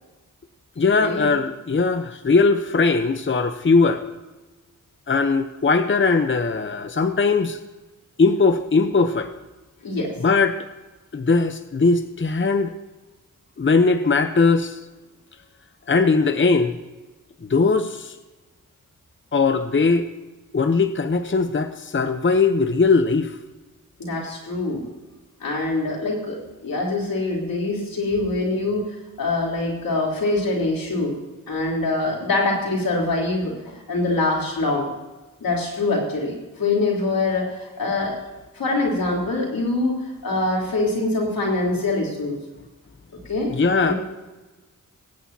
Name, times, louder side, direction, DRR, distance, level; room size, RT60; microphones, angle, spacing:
voice 1, 0.8-4.0 5.1-7.6 8.2-9.3 10.2-10.6 11.1-12.7 13.6-14.8 15.9-16.8 17.4-18.2 19.3-20.1 20.5-23.4 43.5-43.9, left 4 dB, 35° left, 9 dB, 0.8 m, -19 dB
voice 2, 24.0-24.8 25.4-26.4 26.6-28.8 29.2-31.1 31.5-34.9 35.4-38.1 38.6-39.9 40.2-42.3 43.3-43.5 43.8-43.9, left 2 dB, 85° left, -3 dB, 3.7 m, -24 dB
20.0 x 9.3 x 2.8 m, 1.1 s
cardioid pair, 55°, 34 cm